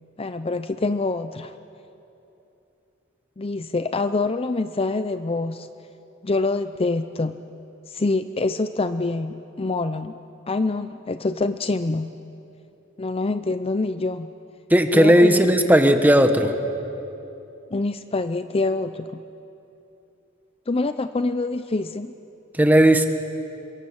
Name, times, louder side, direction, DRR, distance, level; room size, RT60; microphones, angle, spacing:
voice 1, 0.2-1.5 3.4-5.7 6.2-7.4 7.9-10.2 10.5-12.1 13.0-14.3 14.9-15.5 17.7-19.2 20.7-22.1, left 3 dB, 30° left, 11 dB, 0.6 m, -25 dB
voice 2, 14.7-16.5 22.6-23.1, equal, 10° right, 6 dB, 1.5 m, -15 dB
27.5 x 22.5 x 8.8 m, 2.9 s
head